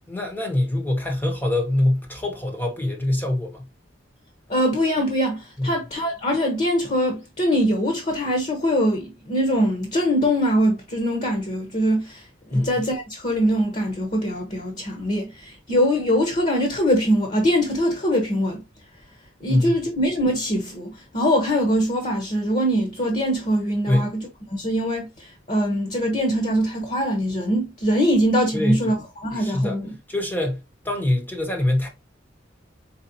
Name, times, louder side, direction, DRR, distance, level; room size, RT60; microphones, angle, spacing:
voice 1, 0.1-3.6 5.6-5.8 12.5-12.7 19.5-19.7 23.9-24.1 28.5-28.8 29.4-29.8 30.1-31.9, left 1 dB, 10° left, 0.8 m, -23 dB
voice 2, 4.5-18.6 19.4-29.0 29.2-29.9, equal, 40° left, 1.0 m, -23 dB
4.4 x 4.1 x 2.8 m
head